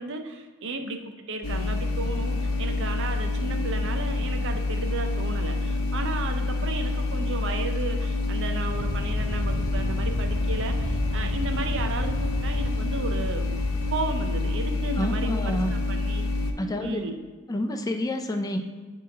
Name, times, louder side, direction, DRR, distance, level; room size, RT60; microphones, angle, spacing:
voice 1, 0.0-13.5 13.9-16.3 16.8-17.2, right 3 dB, 60° right, 5 dB, 0.6 m, -34 dB
sound 1, 1.4-16.5, left 3 dB, 85° left, 0.7 m, -27 dB
Aircraft, 8.7-15.0, equal, 10° right, 1.3 m, -35 dB
voice 2, 15.0-15.7 16.6-17.0 17.5-18.6, left 1 dB, 15° left, 5 dB, 0.4 m, -28 dB
9.1 x 3.1 x 3.5 m, 1.4 s
head